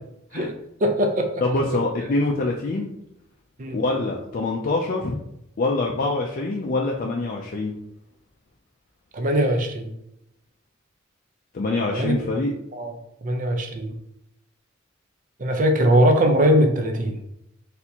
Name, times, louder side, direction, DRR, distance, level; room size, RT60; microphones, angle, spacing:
voice 1, 0.8-1.3 3.6-3.8 9.1-9.9 11.9-12.3 12.7-12.9 13.2-13.9 15.4-17.2, equal, 40° right, 4 dB, 0.6 m, -21 dB
voice 2, 1.4-2.9 3.7-5.2 5.6-7.7 11.5-12.5, left 2 dB, 45° left, 0 dB, 0.4 m, -25 dB
4.2 x 3.4 x 2.8 m, 0.80 s
head